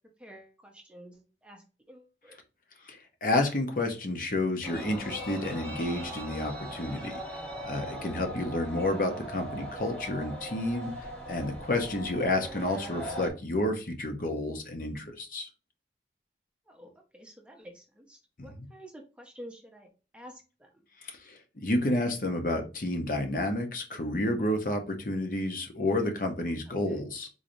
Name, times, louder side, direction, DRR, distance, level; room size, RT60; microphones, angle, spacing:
voice 1, 0.2-2.4 16.7-19.9 20.1-20.7 25.0-25.2 26.9-27.0, equal, 5° right, 2 dB, 0.6 m, -50 dB
voice 2, 2.8-7.2 7.6-15.5 18.4-18.7 21.0-27.3, left 1 dB, 50° left, 4 dB, 0.7 m, -30 dB
sound 1, 4.6-13.3, right 1 dB, 10° left, 1.0 m, -40 dB
3.9 x 3.1 x 2.6 m, 0.32 s
head